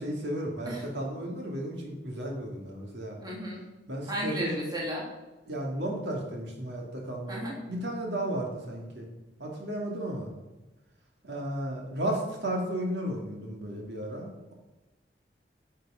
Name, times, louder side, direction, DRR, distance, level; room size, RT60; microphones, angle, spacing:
voice 1, 0.0-3.2 3.9-4.6 5.5-9.1 9.4-10.3 11.2-14.5, right 1 dB, 75° right, 0 dB, 2.5 m, -34 dB
voice 2, 3.2-3.6 4.1-5.0 7.3-7.6, equal, 25° right, -4 dB, 2.6 m, -33 dB
11.0 x 6.5 x 5.6 m, 1.1 s
head